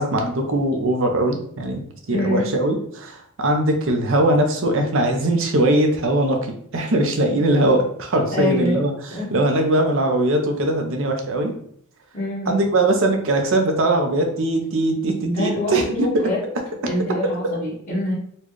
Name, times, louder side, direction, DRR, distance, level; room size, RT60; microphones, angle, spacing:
voice 1, 0.0-8.9 9.3-11.5 12.5-16.3 17.2-17.5, right 1 dB, 65° right, 4 dB, 0.7 m, -21 dB
voice 2, 2.1-2.4 8.3-8.8 9.1-9.3 12.1-12.6 15.2-16.4 16.8-18.1, left 1 dB, 35° left, -11 dB, 1.4 m, -25 dB
4.2 x 2.3 x 3.1 m, 0.63 s
head